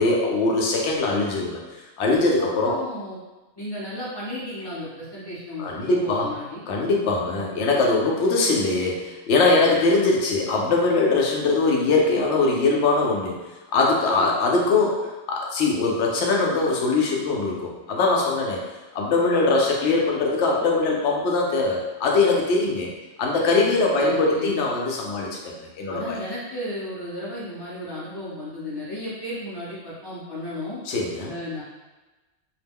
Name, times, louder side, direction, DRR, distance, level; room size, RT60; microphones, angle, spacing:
voice 1, 0.0-1.6 2.0-2.8 5.6-6.3 6.7-13.4 13.7-15.0 15.3-18.6 18.9-22.9 23.2-26.2 30.9-31.3, left 3 dB, 80° left, -1 dB, 0.9 m, -22 dB
voice 2, 2.4-3.2 3.6-6.6 14.2-14.7 24.0-24.5 25.9-30.8 31.3-31.6, left 1 dB, 25° left, -9 dB, 0.9 m, -34 dB
2.4 x 2.1 x 3.4 m, 1.1 s
omnidirectional pair, 1.1 m